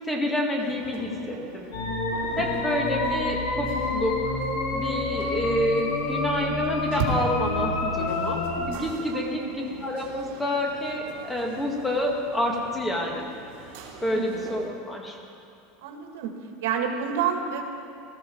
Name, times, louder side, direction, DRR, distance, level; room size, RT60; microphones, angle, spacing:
voice 1, 0.0-1.7 2.4-4.4 4.7-9.4 9.8-13.2 14.0-15.2, left 1 dB, 10° left, 0 dB, 1.9 m, -28 dB
sound 1, 0.6-14.7, right 5 dB, 65° right, 2.8 m, -40 dB
sound 2, 1.7-8.6, left 3 dB, 85° left, 3.1 m, -28 dB
voice 2, 9.1-9.8 14.1-14.5 15.8-16.3 16.6-17.6, right 7 dB, 85° right, 3 dB, 1.9 m, -30 dB
19.0 x 14.0 x 4.6 m, 2.5 s
supercardioid pair, 160°, 0 cm